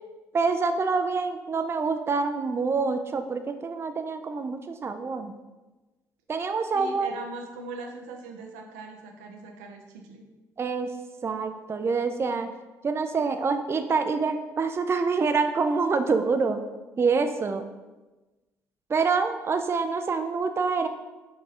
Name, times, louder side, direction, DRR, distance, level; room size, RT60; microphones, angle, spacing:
voice 1, 0.3-5.3 6.3-7.2 10.6-10.9 11.2-12.5 12.8-16.6 17.0-17.6 18.9-20.9, right 4 dB, 30° right, 8 dB, 0.4 m, -26 dB
voice 2, 6.7-10.2, right 3 dB, 80° right, 3 dB, 0.5 m, -40 dB
5.7 x 2.7 x 3.1 m, 1.1 s
hypercardioid pair, 50°, 9 cm